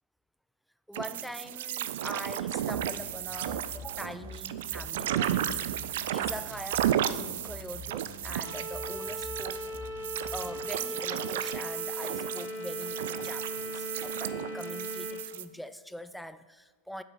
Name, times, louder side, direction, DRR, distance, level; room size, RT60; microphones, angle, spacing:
voice 1, 0.9-5.8 6.1-9.7 10.3-17.0, equal, ahead, 13 dB, 0.5 m, -43 dB
sound 1, 0.9-15.4, right 11 dB, 55° right, 0.5 m, -33 dB
sound 2, 2.7-10.7, left 2 dB, 30° left, 2.8 m, -47 dB
sound 3, 8.4-15.1, left 1 dB, 65° left, 3.1 m, -39 dB
9.1 x 7.6 x 7.1 m, 1.4 s
figure-of-eight pair, 90°, 0 cm